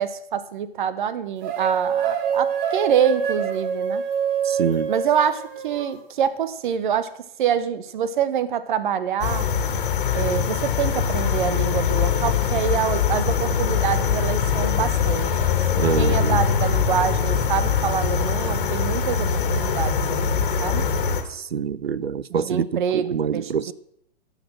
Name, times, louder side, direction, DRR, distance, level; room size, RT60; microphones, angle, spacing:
voice 1, 0.0-4.0 4.9-7.1 7.4-9.5 10.1-15.3 15.7-20.9 22.3-23.7, right 8 dB, 55° right, 1.0 m, -26 dB
sound 1, 1.4-5.9, right 7 dB, 30° right, 1.5 m, -25 dB
voice 2, 4.4-4.9 15.8-16.4 21.3-22.6 22.9-23.7, right 7 dB, 85° right, 0.6 m, -25 dB
sound 2, 9.2-21.2, left 7 dB, 60° left, 1.8 m, -22 dB
12.5 x 6.7 x 6.2 m
figure-of-eight pair, 115°, 30 cm